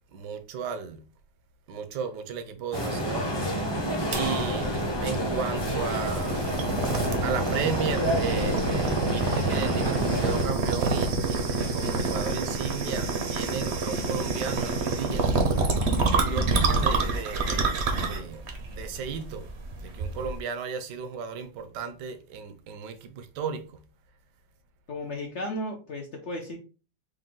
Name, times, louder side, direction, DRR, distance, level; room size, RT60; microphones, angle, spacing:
voice 1, 0.1-1.1 1.7-6.5 7.2-15.3 16.3-18.4 18.7-19.5 19.8-23.8, right 6 dB, 75° right, 1.2 m, -35 dB
sound 1, 2.7-10.4, equal, 30° left, 0.4 m, -29 dB
sound 2, 4.1-20.4, right 3 dB, 55° right, 0.7 m, -28 dB
voice 2, 16.1-16.5 16.9-17.2 24.9-26.6, left 1 dB, 60° left, 0.7 m, -35 dB
4.9 x 2.2 x 3.7 m
omnidirectional pair, 1.9 m